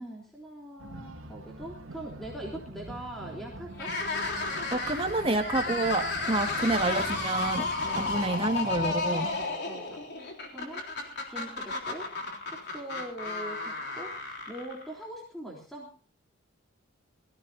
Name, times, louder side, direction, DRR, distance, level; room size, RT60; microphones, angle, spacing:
voice 1, 0.0-4.0 6.1-6.7 7.8-8.4 9.2-10.9 11.3-12.1 12.5-15.9, right 1 dB, ahead, -3 dB, 3.5 m, -42 dB
sound 1, 0.8-9.5, right 1 dB, 75° right, 2.3 m, -44 dB
sound 2, 3.7-15.0, left 3 dB, 55° left, 3.6 m, -33 dB
voice 2, 4.7-7.6 8.0-9.3, right 2 dB, 25° right, 5 dB, 1.8 m, -28 dB
22.0 x 15.5 x 2.7 m, 0.38 s
head